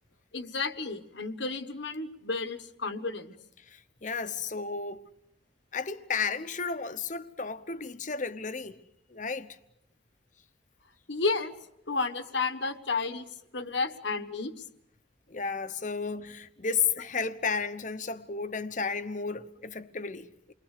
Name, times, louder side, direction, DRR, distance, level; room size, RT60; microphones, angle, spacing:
voice 1, 0.3-3.3 11.1-11.5 11.9-13.3 13.5-14.5, left 4 dB, 65° left, 1.4 m, -32 dB
voice 2, 3.7-5.0 5.7-8.8 9.1-9.6 15.3-20.5, left 5 dB, 40° left, 1.0 m, -33 dB
29.0 x 22.0 x 6.7 m
head